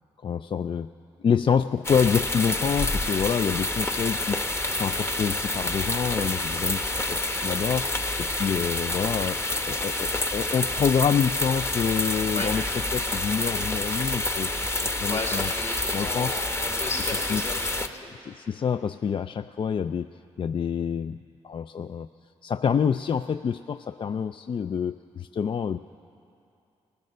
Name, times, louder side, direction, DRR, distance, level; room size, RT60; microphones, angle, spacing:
voice 1, 0.2-0.9 1.2-12.6 12.9-15.5 15.9-16.4 17.3-17.4 18.2-20.1 20.4-21.2 21.4-22.1 22.4-25.8, left 7 dB, 45° left, 11 dB, 0.3 m, -27 dB
sound 1, 1.8-17.9, left 2 dB, 20° left, 0.9 m, -28 dB
voice 2, 15.1-18.4, left 2 dB, 70° left, -4 dB, 3.4 m, -34 dB
19.5 x 11.0 x 6.6 m, 2.6 s
supercardioid pair, 50°, 12 cm